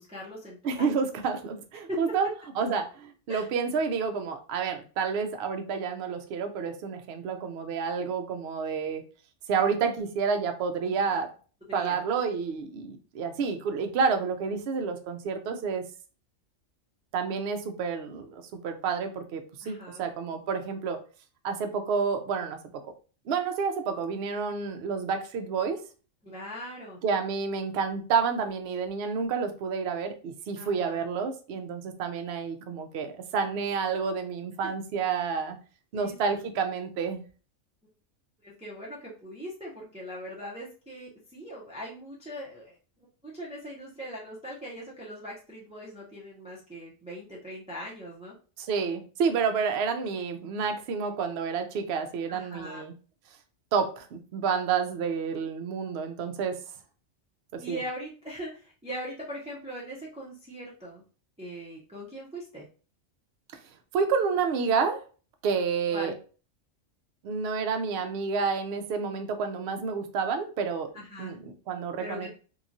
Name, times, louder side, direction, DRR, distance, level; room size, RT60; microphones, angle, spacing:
voice 1, 0.0-1.0 1.9-2.2 3.3-3.5 11.7-12.0 19.6-20.1 26.2-27.0 30.6-31.0 35.9-36.2 38.4-42.8 43.2-48.3 52.3-52.8 57.6-61.0 61.4-62.7 65.9-66.2 70.9-71.4 72.0-72.3, equal, 10° right, -5 dB, 0.3 m, -40 dB
voice 2, 0.6-2.3 2.6-9.0 9.5-11.3 11.7-15.9 17.1-21.0 21.4-22.6 23.3-25.8 27.0-35.6 35.9-37.2 48.6-52.9 53.7-56.6 57.5-57.8 63.9-65.0 65.4-66.1 67.2-70.9 71.2-72.3, right 5 dB, 65° right, 6 dB, 0.7 m, -29 dB
2.9 x 2.3 x 2.5 m, 0.37 s
omnidirectional pair, 1.3 m